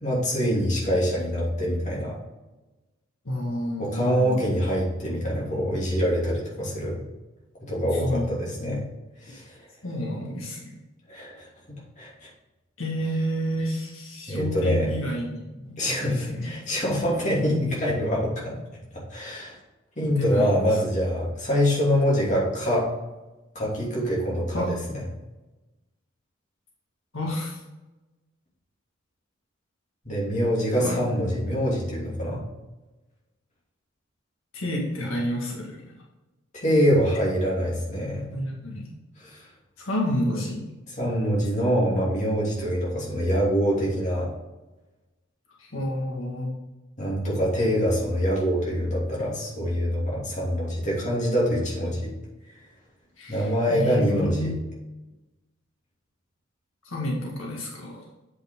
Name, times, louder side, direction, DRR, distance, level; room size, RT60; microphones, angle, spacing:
voice 1, 0.0-2.2 3.8-7.0 7.6-8.8 9.2-9.5 11.1-12.3 14.3-14.9 15.8-18.6 19.1-19.6 20.0-22.9 23.5-25.0 30.0-32.4 36.5-38.3 39.2-39.4 41.0-44.3 47.0-52.1 53.3-54.5, equal, 35° left, -4 dB, 2.7 m, -25 dB
voice 2, 3.3-4.4 7.9-8.3 9.8-10.6 12.8-16.6 20.0-20.8 24.5-24.7 27.1-27.6 30.8-31.1 34.5-35.8 38.3-38.9 39.8-40.6 45.6-46.5 53.2-54.5 56.8-58.0, equal, 85° left, -2 dB, 1.8 m, -30 dB
8.0 x 5.4 x 3.8 m, 1.1 s
head